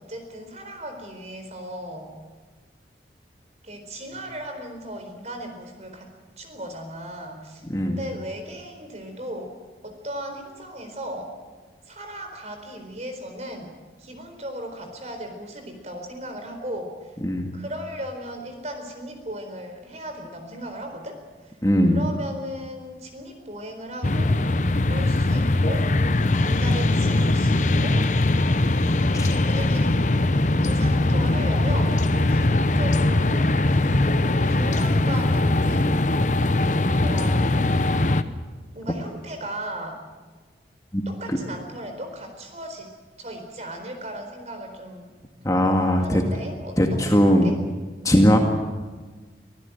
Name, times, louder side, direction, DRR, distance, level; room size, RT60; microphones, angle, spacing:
voice 1, 0.0-2.1 3.6-6.1 6.4-9.5 9.8-11.3 11.9-13.7 14.0-17.1 17.5-21.2 21.4-21.6 21.9-24.5 24.9-26.0 26.4-28.1 29.4-30.0 30.6-32.0 32.3-33.9 34.2-36.3 36.9-37.6 38.7-40.0 41.1-42.9 43.2-45.1 46.0-47.5, equal, 40° right, 5 dB, 4.2 m, -36 dB
voice 2, 17.2-17.5 21.6-22.0 29.1-29.4 40.9-41.0 45.4-46.2 46.8-47.5 48.0-48.4, equal, 20° left, 2 dB, 2.0 m, -19 dB
sound 1, 24.0-38.2, left 2 dB, 45° left, 0.9 m, -21 dB
25.0 x 15.5 x 9.1 m, 1.4 s
head